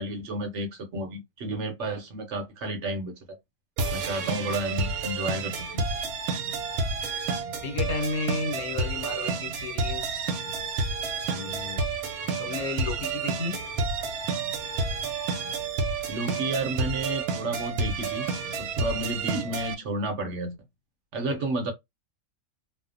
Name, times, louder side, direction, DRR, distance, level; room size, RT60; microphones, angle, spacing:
voice 1, 0.0-3.2 3.9-5.8 16.1-18.3 18.6-20.6 21.1-21.7, right 2 dB, 60° right, 0.9 m, -31 dB
sound 1, 3.8-19.7, right 4 dB, 85° right, 1.1 m, -30 dB
voice 2, 7.5-10.3 11.3-11.9 12.4-13.6, left 4 dB, 80° left, 1.2 m, -33 dB
2.7 x 2.0 x 2.4 m
omnidirectional pair, 1.5 m